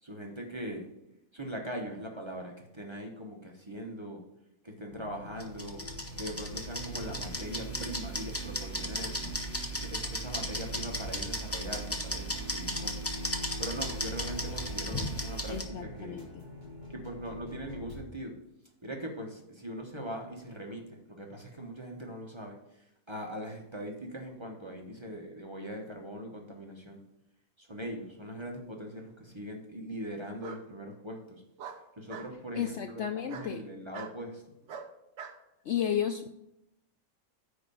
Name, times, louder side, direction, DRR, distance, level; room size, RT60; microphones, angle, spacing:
voice 1, 0.0-0.9 1.3-4.2 4.6-5.8 6.2-9.3 9.7-13.0 13.6-16.3 16.9-18.4 18.8-27.0 27.6-31.4 32.0-34.4, equal, 20° right, 1 dB, 1.0 m, -41 dB
sound 1, 4.9-18.0, equal, 40° right, 3.6 m, -44 dB
sound 2, 5.4-15.6, equal, 15° left, 0.7 m, -36 dB
voice 2, 15.5-16.3 32.6-33.6 35.7-36.3, left 9 dB, 65° left, 8 dB, 0.7 m, -32 dB
Bark, 28.2-28.9 30.4-30.6 31.6-32.3 33.3-33.5 33.9-34.1 34.7-35.4, right 6 dB, 60° right, 1.0 m, -44 dB
9.3 x 3.7 x 6.9 m, 0.83 s
omnidirectional pair, 1.5 m